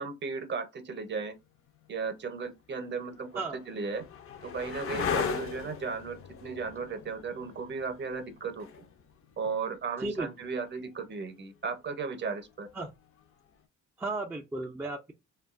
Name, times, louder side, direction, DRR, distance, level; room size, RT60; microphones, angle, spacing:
voice 1, 0.0-1.4 1.9-4.0 4.4-8.8 9.4-12.7, right 5 dB, 40° right, 0.7 m, -36 dB
sound 1, 1.8-1.9 2.7-10.4 12.7-13.2, left 7 dB, 50° left, 0.5 m, -38 dB
voice 2, 14.0-15.1, right 2 dB, 10° right, 0.3 m, -34 dB
2.6 x 2.2 x 2.4 m
cardioid pair, 90°, 30 cm